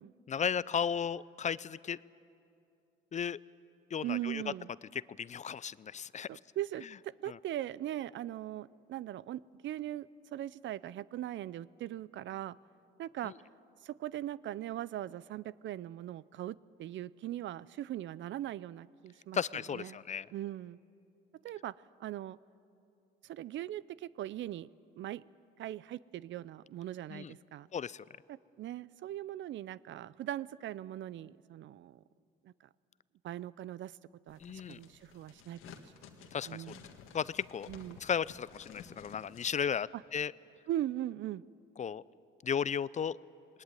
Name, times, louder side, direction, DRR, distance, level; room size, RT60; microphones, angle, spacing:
voice 1, 0.3-2.0 3.1-3.4 3.9-4.4 4.9-6.3 7.3-7.4 13.2-13.3 19.3-20.3 27.1-27.3 27.7-28.0 34.4-34.8 36.3-36.7 37.1-37.7 38.0-40.3 41.8-42.0 42.4-43.2, left 7 dB, 35° left, 20 dB, 0.4 m, -35 dB
voice 2, 4.0-4.7 6.3-12.6 13.0-13.3 13.8-19.4 19.7-20.0 20.3-20.8 21.4-21.7 22.0-22.4 23.2-24.7 25.0-25.2 25.6-27.7 28.3-32.0 32.4-32.5 33.2-34.0 34.3-35.8 36.2-36.8 37.7-38.0 39.9-40.0 40.7-41.4, right 13 dB, 65° right, 20 dB, 0.5 m, -40 dB
sound 1, 34.3-39.5, left 7 dB, 80° left, 1.7 m, -54 dB
20.5 x 19.5 x 9.1 m, 2.6 s
cardioid pair, 80°, 21 cm